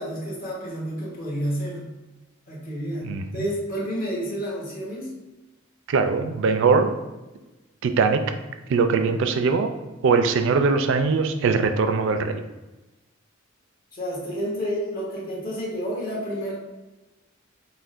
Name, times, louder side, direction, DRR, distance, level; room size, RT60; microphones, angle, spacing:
voice 1, 0.0-1.9 2.5-5.1 13.9-16.5, equal, 45° left, -5 dB, 1.1 m, -30 dB
voice 2, 5.9-6.9 7.8-8.2 8.7-9.7 10.0-12.4, right 4 dB, 65° right, 8 dB, 0.3 m, -21 dB
5.7 x 2.1 x 2.5 m, 1.1 s
head